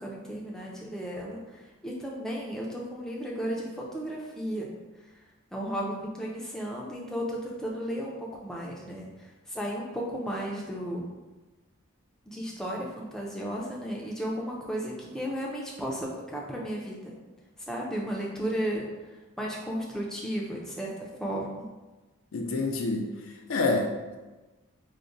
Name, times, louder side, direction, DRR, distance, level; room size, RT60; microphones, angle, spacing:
voice 1, 0.0-4.7 5.0-5.1 5.5-11.1 12.3-17.1 17.7-18.9 19.4-21.7, equal, ahead, -3 dB, 0.4 m, -34 dB
voice 2, 22.3-24.2, left 3 dB, 65° left, 2 dB, 0.4 m, -28 dB
4.7 x 2.1 x 2.6 m, 1.2 s
head